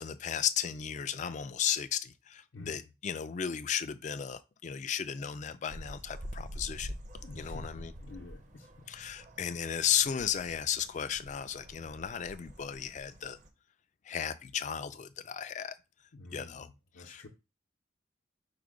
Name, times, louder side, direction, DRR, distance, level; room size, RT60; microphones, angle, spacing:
voice 1, 0.0-6.9 7.4-7.9 8.9-13.4 14.1-15.7 16.3-16.7 17.0-17.3, left 9 dB, 35° left, 0.3 m, -34 dB
voice 2, 2.5-2.9 7.2-8.7 16.1-17.3, left 2 dB, 70° left, 0.7 m, -49 dB
sound 1, 5.7-13.5, equal, 40° right, 0.6 m, -46 dB
4.8 x 2.2 x 4.8 m
head